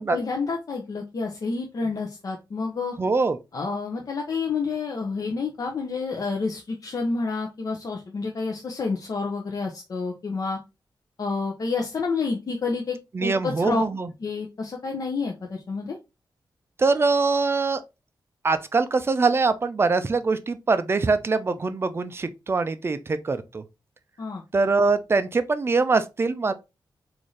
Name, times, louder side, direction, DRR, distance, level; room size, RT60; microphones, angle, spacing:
voice 1, 0.0-3.0 3.5-10.6 11.2-13.8 14.2-16.0 24.2-24.4, left 4 dB, 50° left, 0.6 m, -29 dB
voice 2, 3.0-3.4 13.1-14.1 16.8-17.8 18.4-23.6 24.5-26.5, right 4 dB, 30° right, 0.3 m, -23 dB
3.9 x 2.5 x 3.1 m
wide cardioid pair, 150°, 8 cm